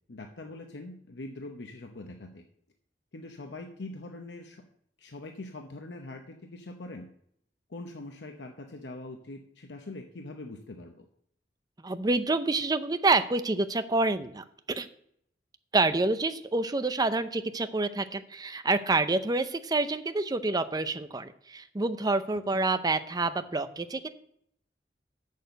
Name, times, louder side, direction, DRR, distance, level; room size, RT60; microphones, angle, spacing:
voice 1, 0.1-2.4 3.1-4.6 5.0-7.1 7.7-11.0 22.5-22.6, left 2 dB, 80° left, 4 dB, 0.8 m, -43 dB
voice 2, 11.8-14.9 15.7-24.1, right 3 dB, 20° right, 10 dB, 0.6 m, -27 dB
7.0 x 6.6 x 7.8 m, 0.69 s
head